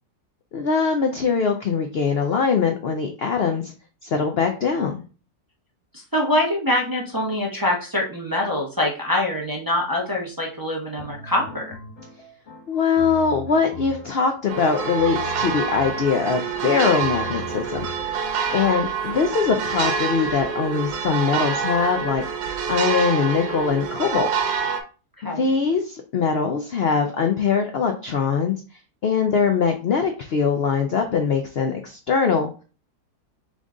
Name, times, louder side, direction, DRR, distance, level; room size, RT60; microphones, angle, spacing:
voice 1, 0.5-3.7 4.0-5.0 12.7-17.9 18.5-22.2 22.7-24.3 25.2-28.6 29.0-32.5, left 5 dB, 75° left, 5 dB, 0.5 m, -22 dB
voice 2, 5.9-11.6 25.2-25.5, left 1 dB, 20° right, -2 dB, 0.6 m, -24 dB
sound 1, 11.0-18.9, left 5 dB, 50° left, 1.3 m, -40 dB
sound 2, 14.5-24.8, right 6 dB, 80° right, 1.3 m, -26 dB
3.8 x 3.6 x 3.7 m, 0.36 s
omnidirectional pair, 1.7 m